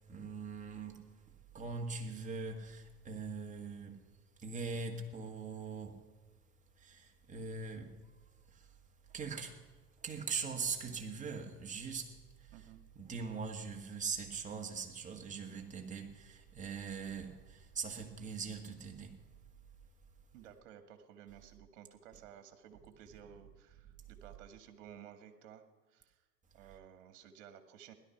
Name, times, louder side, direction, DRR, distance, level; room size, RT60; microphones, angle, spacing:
voice 1, 0.1-1.0 1.5-4.0 4.4-6.0 6.8-7.9 8.5-8.6 9.1-9.6 10.0-12.1 12.9-19.2, right 5 dB, 15° right, 1.8 m, -41 dB
voice 2, 12.5-12.8 20.3-26.2 26.5-27.9, right 9 dB, 55° right, 1.9 m, -55 dB
16.5 x 11.5 x 5.9 m
hypercardioid pair, 105°, 47 cm